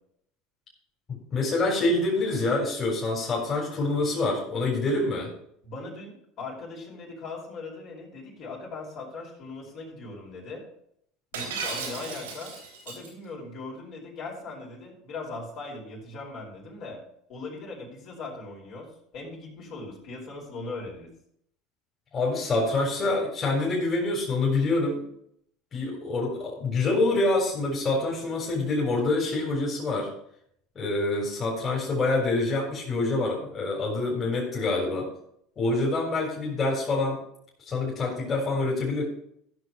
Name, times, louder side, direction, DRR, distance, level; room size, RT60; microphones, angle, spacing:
voice 1, 1.3-5.3 22.1-25.0 25.7-30.1 30.8-35.1 35.6-37.2 37.6-39.0, left 2 dB, 35° left, -3 dB, 4.1 m, -26 dB
voice 2, 5.6-10.6 11.3-12.5 12.8-17.0 17.3-21.1, left 3 dB, 55° left, -2 dB, 4.7 m, -39 dB
Shatter, 11.3-13.1, right 4 dB, 85° right, 3.7 m, -35 dB
14.5 x 6.4 x 4.8 m, 0.71 s
hypercardioid pair, 80°, 0 cm